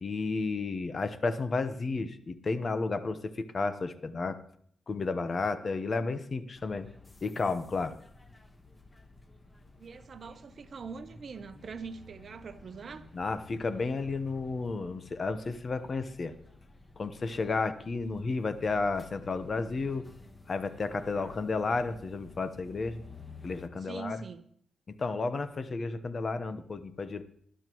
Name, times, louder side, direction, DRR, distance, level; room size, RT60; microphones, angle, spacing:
voice 1, 0.0-4.4 4.9-6.9 7.2-7.9 13.1-16.3 17.0-20.1 20.5-23.0 23.4-24.2 25.0-27.2, left 3 dB, 40° left, 1.0 m, -32 dB
sound 1, 6.5-23.7, left 3 dB, 25° left, 1.4 m, -53 dB
voice 2, 9.8-13.1 21.2-21.4 23.8-24.5, right 5 dB, 55° right, 0.9 m, -43 dB
19.5 x 11.5 x 3.1 m
cardioid pair, 100°, 0 cm